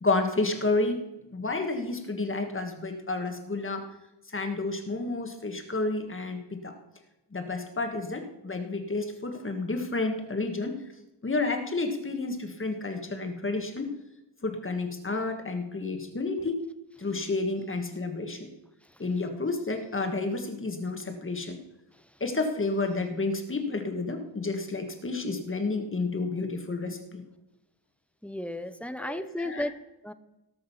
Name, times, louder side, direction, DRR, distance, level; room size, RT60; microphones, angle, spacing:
voice 1, 0.0-1.0 1.3-3.8 4.3-6.7 7.3-10.7 11.2-13.9 14.4-16.6 17.0-18.5 19.0-21.6 22.2-27.2 29.0-29.6, left 3 dB, 30° left, 5 dB, 1.5 m, -30 dB
voice 2, 28.2-30.1, left 1 dB, 5° left, 12 dB, 0.5 m, -36 dB
18.0 x 6.4 x 5.6 m, 0.96 s
wide cardioid pair, 145°, 42 cm